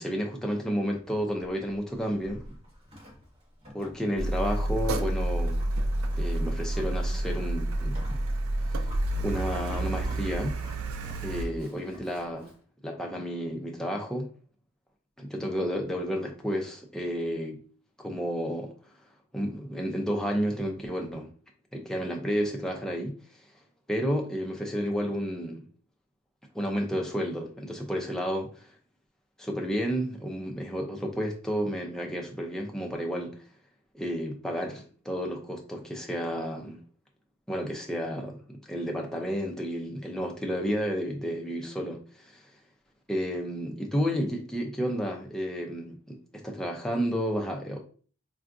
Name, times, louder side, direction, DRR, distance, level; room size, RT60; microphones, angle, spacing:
voice 1, 0.0-2.4 3.7-5.6 6.1-8.0 9.2-10.6 11.2-12.5 12.8-14.3 15.2-17.6 18.0-18.7 19.3-21.3 21.7-23.1 23.9-25.6 26.5-28.6 29.4-33.4 33.9-36.8 37.5-38.4 38.7-42.4 43.1-47.8, equal, 5° left, 0.4 m, -31 dB
Livestock farm animals working animals, 0.9-12.6, equal, 30° right, 0.9 m, -49 dB
Car, 4.2-11.5, right 1 dB, 80° right, 0.4 m, -29 dB
3.6 x 2.3 x 2.5 m
head